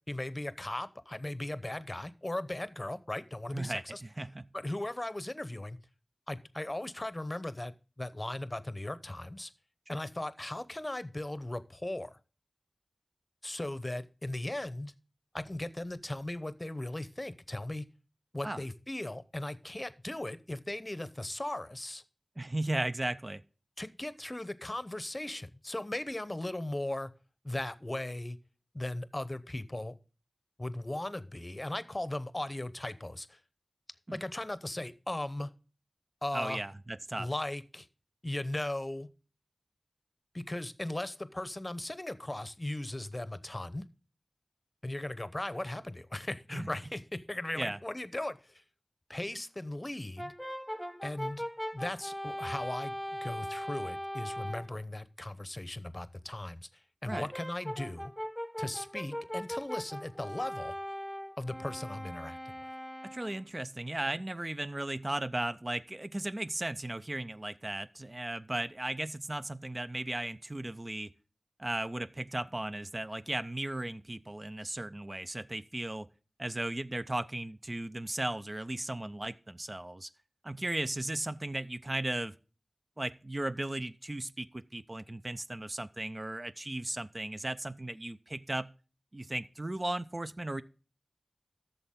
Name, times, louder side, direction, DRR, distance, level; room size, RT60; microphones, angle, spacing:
voice 1, 0.1-4.0 4.5-5.8 6.3-9.5 9.9-12.2 13.4-14.9 15.3-17.9 18.3-22.0 23.8-27.1 27.4-28.4 28.7-29.9 30.6-33.4 34.1-35.5 36.2-36.6 37.2-37.9 38.2-39.1 40.3-43.8 44.8-48.6 49.1-50.3 51.0-51.4 51.7-52.9 53.2-58.1 58.6-60.7 61.4-62.4, left 1 dB, 30° left, 0.8 m, -37 dB
voice 2, 3.5-4.5 9.9-10.0 18.4-18.6 22.4-23.4 34.1-34.2 36.3-37.3 46.5-46.7 47.5-47.8 57.1-57.3 63.0-71.1 71.6-76.1 76.4-80.1 80.4-82.3 83.0-88.7 89.1-90.6, right 1 dB, 35° right, 0.5 m, -36 dB
Brass instrument, 50.2-54.7 57.1-63.4, equal, ahead, 0.9 m, -40 dB
12.5 x 6.9 x 3.7 m
wide cardioid pair, 50°, 0 cm